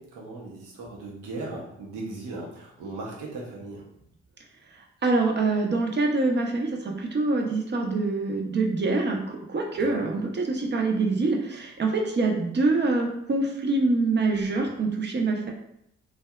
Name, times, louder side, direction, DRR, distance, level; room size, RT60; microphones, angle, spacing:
voice 1, 0.0-3.8 9.7-10.0, right 2 dB, 80° right, -3 dB, 0.7 m, -38 dB
voice 2, 5.0-15.5, right 3 dB, 35° right, 1 dB, 0.6 m, -25 dB
2.6 x 2.2 x 2.2 m, 0.77 s
hypercardioid pair, 45°, 31 cm